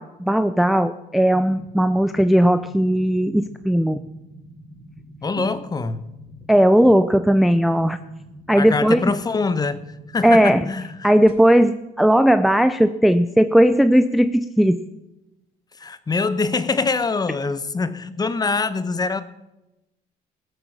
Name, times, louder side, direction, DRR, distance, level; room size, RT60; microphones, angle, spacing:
voice 1, 0.0-4.0 5.4-5.5 6.5-8.0 8.5-9.1 10.2-10.6 11.0-14.8, equal, ahead, 11 dB, 0.4 m, -17 dB
sound 1, 1.3-11.3, equal, 30° right, 4.1 m, -45 dB
voice 2, 5.2-6.1 8.6-11.1 15.8-19.2, left 4 dB, 25° left, 14 dB, 0.9 m, -24 dB
17.5 x 8.1 x 6.1 m, 0.97 s
cardioid pair, 110°, 17 cm